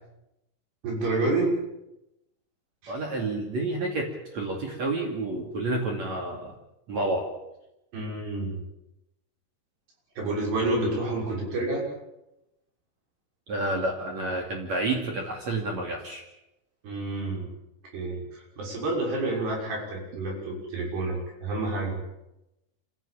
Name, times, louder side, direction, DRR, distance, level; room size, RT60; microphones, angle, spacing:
voice 1, 0.8-1.6 2.8-2.9 7.9-8.6 10.2-11.9 16.8-17.5 17.9-22.0, right 2 dB, 80° right, -1 dB, 8.5 m, -29 dB
voice 2, 2.9-6.5 6.9-7.3 13.5-16.2, right 2 dB, 45° right, 1 dB, 3.5 m, -29 dB
27.0 x 16.5 x 8.8 m, 0.90 s
omnidirectional pair, 4.7 m